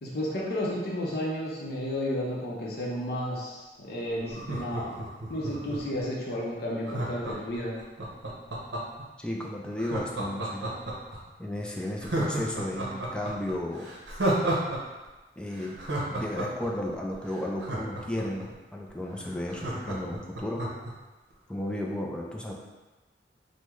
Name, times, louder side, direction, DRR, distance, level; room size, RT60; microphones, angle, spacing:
voice 1, 0.0-5.0 5.3-7.7, equal, 60° left, -4 dB, 0.6 m, -32 dB
Laughter, 4.3-6.0 6.8-9.0 9.8-11.2 11.5-11.6 12.0-14.8 15.0-15.1 15.5-18.4 18.9-19.0 19.2-20.9 21.3-21.4, right 1 dB, 75° right, 0.7 m, -32 dB
voice 2, 9.2-10.7 11.4-13.9 15.4-15.8 16.1-20.6 21.5-22.5, left 1 dB, 5° left, -1 dB, 0.3 m, -34 dB
3.5 x 2.1 x 3.0 m, 1.2 s
head